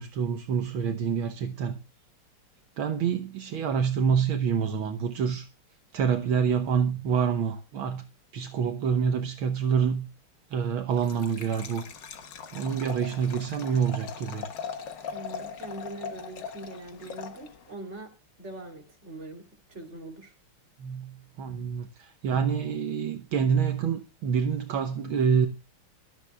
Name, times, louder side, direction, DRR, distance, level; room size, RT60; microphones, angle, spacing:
voice 1, 0.0-1.8 2.8-5.5 5.9-8.0 8.3-10.1 10.5-11.9 12.5-14.5 20.8-25.5, right 6 dB, 70° right, 1.8 m, -27 dB
Liquid, 10.9-17.7, left 6 dB, 60° left, 1.9 m, -40 dB
voice 2, 15.1-18.1 18.4-20.3, right 2 dB, 30° right, 3.4 m, -42 dB
23.0 x 12.5 x 2.3 m
omnidirectional pair, 2.4 m